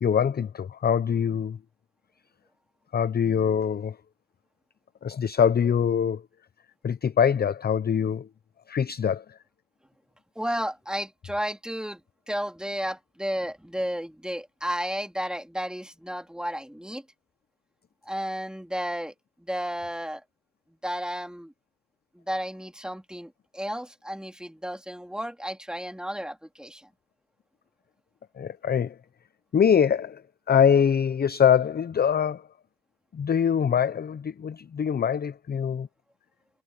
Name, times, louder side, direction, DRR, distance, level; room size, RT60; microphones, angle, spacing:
voice 1, 0.0-1.6 2.9-4.0 5.0-6.2 6.8-8.3 8.7-9.4 28.4-29.0 29.5-30.2 30.5-32.4 33.1-35.9, left 7 dB, 25° left, 0.7 m, -23 dB
voice 2, 10.3-12.0 12.3-17.0 18.0-19.1 19.4-20.2 20.8-21.5 22.1-26.9, equal, ahead, 3.0 m, -32 dB
supercardioid pair, 85°, 38 cm